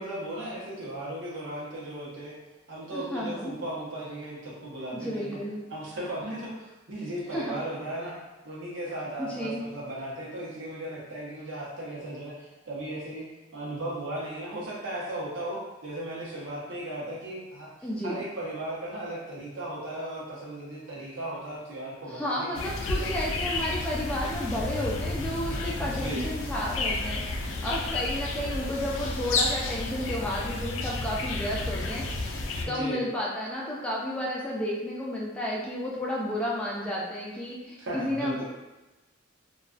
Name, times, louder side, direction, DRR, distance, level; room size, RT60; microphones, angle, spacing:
voice 1, 0.0-2.3 2.7-5.4 5.7-8.2 8.4-13.2 13.5-17.7 18.0-22.5 23.0-23.1 25.8-26.2 32.6-33.0 37.8-38.4, right 1 dB, 85° right, -6 dB, 0.8 m, -36 dB
voice 2, 2.9-3.5 4.9-5.6 7.3-7.6 9.2-9.7 17.8-18.2 22.1-32.4 32.6-38.4, left 1 dB, 5° left, -5 dB, 0.4 m, -32 dB
sound 1, 22.5-32.6, left 2 dB, 85° left, 0.3 m, -31 dB
2.3 x 2.2 x 2.4 m, 1.1 s
head